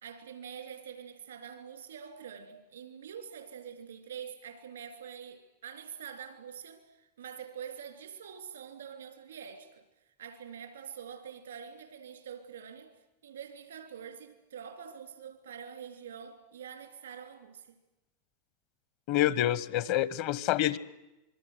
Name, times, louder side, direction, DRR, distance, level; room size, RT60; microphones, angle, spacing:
voice 1, 0.0-6.8 7.2-9.8 10.2-12.9 13.2-17.8 19.2-19.3, right 8 dB, 85° right, 3.5 m, -45 dB
voice 2, 19.1-20.8, left 13 dB, 55° left, 1.0 m, -27 dB
26.5 x 22.0 x 8.1 m
hypercardioid pair, 95°, 0 cm